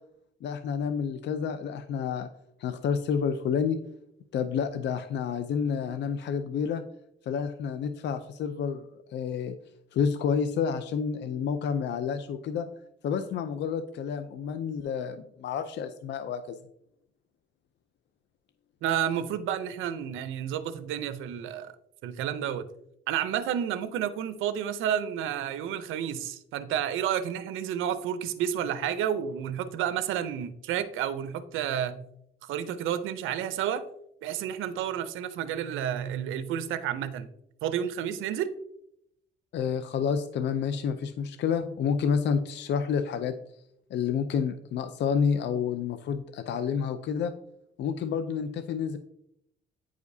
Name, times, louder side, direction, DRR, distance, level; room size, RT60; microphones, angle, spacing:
voice 1, 0.4-2.3 2.6-3.8 4.3-6.8 7.3-9.5 9.9-12.7 13.0-16.6 39.5-43.3 43.9-47.3 47.8-49.0, left 7 dB, 60° left, 9 dB, 0.5 m, -29 dB
voice 2, 18.8-21.7 22.0-22.7 23.1-32.0 32.4-33.8 34.2-37.3 37.6-38.5, right 9 dB, 90° right, 11 dB, 0.6 m, -30 dB
9.1 x 4.9 x 2.7 m, 0.76 s
cardioid pair, 90°, 20 cm